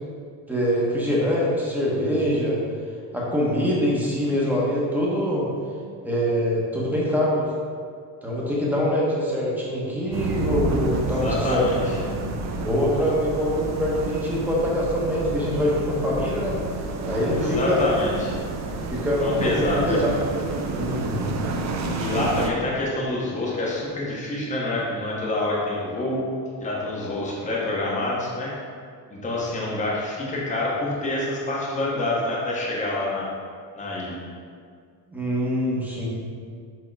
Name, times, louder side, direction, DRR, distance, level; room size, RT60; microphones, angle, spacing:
voice 1, 0.5-2.6 3.1-5.5 6.0-7.5 8.2-11.9 12.6-16.6 17.1-17.9 18.9-20.1 20.7-21.3 35.1-36.1, equal, 5° right, -6 dB, 1.1 m, -24 dB
sound 1, 10.1-22.5, right 3 dB, 40° right, 0.6 m, -29 dB
voice 2, 11.2-12.0 17.3-18.4 19.2-20.0 22.0-26.2 26.6-28.5 29.1-33.3 33.7-34.2, left 2 dB, 20° left, -5 dB, 1.0 m, -27 dB
6.6 x 3.6 x 4.6 m, 2.1 s
cardioid pair, 170°, 41 cm